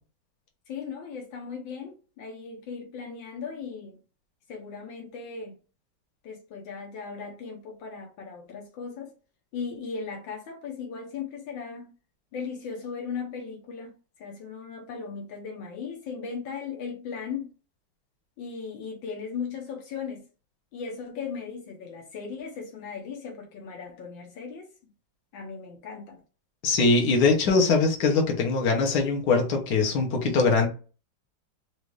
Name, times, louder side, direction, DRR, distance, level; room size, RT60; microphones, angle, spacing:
voice 1, 0.7-4.0 4.5-5.5 6.2-9.1 9.5-11.9 12.3-17.5 18.4-20.3 20.7-24.7 25.3-26.2, left 5 dB, 80° left, 1.7 m, -37 dB
voice 2, 26.6-30.7, left 4 dB, 60° left, 1.6 m, -22 dB
5.0 x 2.7 x 3.2 m
omnidirectional pair, 2.1 m